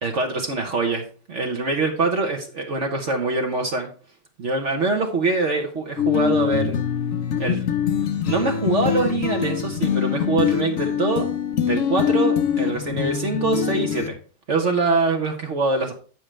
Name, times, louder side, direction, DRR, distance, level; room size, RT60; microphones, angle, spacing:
voice 1, 0.0-3.9 4.4-6.8 7.4-7.7 8.2-11.3 11.7-14.2 14.5-15.9, right 3 dB, 50° right, 2 dB, 1.1 m, -24 dB
sound 1, 6.0-14.1, left 8 dB, 55° left, 1.0 m, -23 dB
8.7 x 7.5 x 3.3 m, 0.39 s
omnidirectional pair, 2.0 m